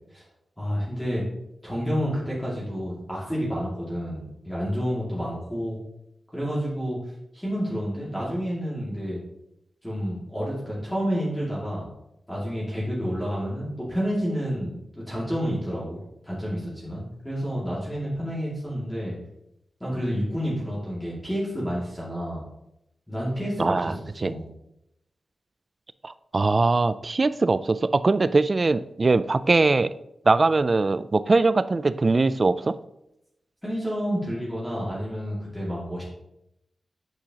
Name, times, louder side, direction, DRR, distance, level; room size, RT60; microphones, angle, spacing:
voice 1, 0.6-1.2 1.6-5.8 6.3-7.0 7.3-9.2 9.8-11.8 12.3-19.1 19.8-22.4 23.1-23.9 24.2-24.4 33.6-36.0, equal, 5° left, -7 dB, 2.3 m, -29 dB
voice 2, 23.6-24.3 26.0-29.9 30.3-32.8, right 3 dB, 40° right, 14 dB, 0.3 m, -21 dB
8.9 x 4.9 x 2.9 m, 0.83 s
wide cardioid pair, 90°, 0 cm